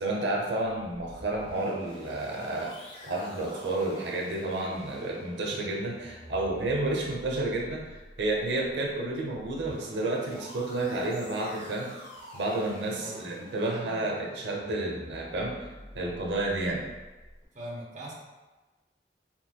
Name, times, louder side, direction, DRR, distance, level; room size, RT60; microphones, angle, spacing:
voice 1, 0.0-2.7 3.0-11.9 12.3-16.8, right 2 dB, 90° right, -1 dB, 0.7 m, -31 dB
sound 1, 0.8-17.4, left 1 dB, 35° left, 0.9 m, -48 dB
voice 2, 17.5-18.1, right 1 dB, 45° right, -4 dB, 0.8 m, -40 dB
4.6 x 4.0 x 2.2 m, 1.2 s
head